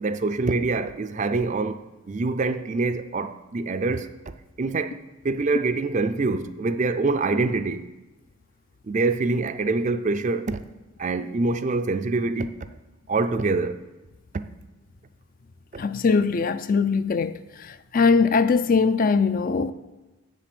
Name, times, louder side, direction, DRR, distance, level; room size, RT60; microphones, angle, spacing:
voice 1, 0.0-1.8 2.1-4.1 4.6-5.0 5.2-7.9 8.9-10.6 11.0-12.5 13.1-13.8, right 3 dB, 35° right, 0.4 m, -25 dB
voice 2, 15.8-19.7, left 5 dB, 40° left, 0.4 m, -21 dB
7.9 x 7.5 x 6.8 m
head